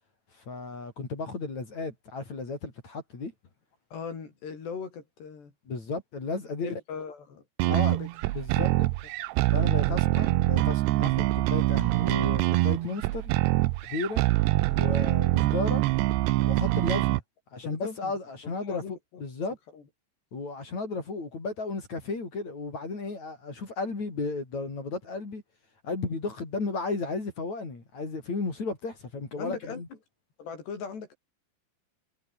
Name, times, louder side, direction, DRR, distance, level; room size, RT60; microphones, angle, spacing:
voice 1, 0.3-3.3 5.7-6.7 7.7-8.0 8.3-8.7 9.5-13.3 13.8-14.2 14.7-15.8 16.4-17.2 17.5-18.8 19.2-19.6 20.3-25.4 25.8-29.9, left 3 dB, 40° left, 6.7 m, -34 dB
voice 2, 3.9-5.5 6.6-8.1 8.6-8.9 9.9-10.0 17.6-18.1 18.4-19.2 19.7-19.8 29.4-29.8 30.4-31.1, left 6 dB, 70° left, 7.3 m, -39 dB
sound 1, 7.6-17.2, right 18 dB, 85° right, 2.9 m, -25 dB
omnidirectional pair, 5.1 m